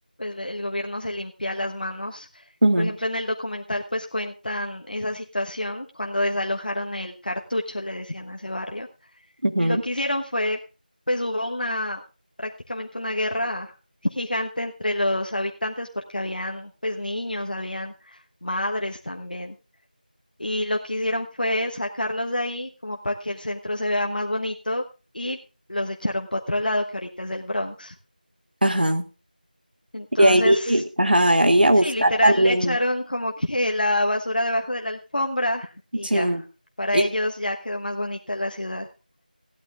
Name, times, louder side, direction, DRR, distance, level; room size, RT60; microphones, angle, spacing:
voice 1, 0.2-2.4 2.8-8.9 9.6-10.6 11.1-12.0 12.4-13.7 14.1-19.5 20.4-24.8 25.1-25.4 25.7-27.9 29.9-30.8 31.8-36.4 36.8-38.9, left 1 dB, 70° left, 2 dB, 1.2 m, -28 dB
voice 2, 2.6-2.9 9.4-9.8 28.6-29.0 30.2-32.8 36.0-36.4 36.9-37.1, right 1 dB, 85° right, 7 dB, 1.5 m, -19 dB
17.0 x 12.0 x 2.5 m, 0.32 s
figure-of-eight pair, 175°, 5 cm